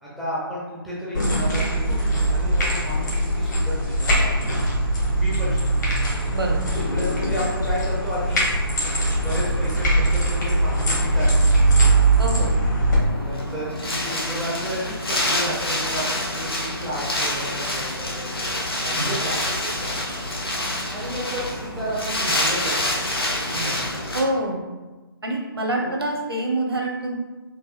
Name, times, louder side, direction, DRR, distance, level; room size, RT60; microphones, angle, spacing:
voice 1, 0.0-4.7 5.1-5.9 6.7-8.4 9.1-11.9 13.1-20.0 20.9-24.1, equal, ahead, -10 dB, 0.4 m, -32 dB
sound 1, 1.1-13.0, right 1 dB, 50° left, 1.0 m, -21 dB
voice 2, 12.2-12.5 18.9-19.1 24.1-24.6 25.2-27.1, right 1 dB, 75° right, 0 dB, 0.8 m, -25 dB
Wind, 13.0-24.2, left 1 dB, 70° left, 0.9 m, -27 dB
3.9 x 2.6 x 2.4 m, 1.2 s
figure-of-eight pair, 140°, 13 cm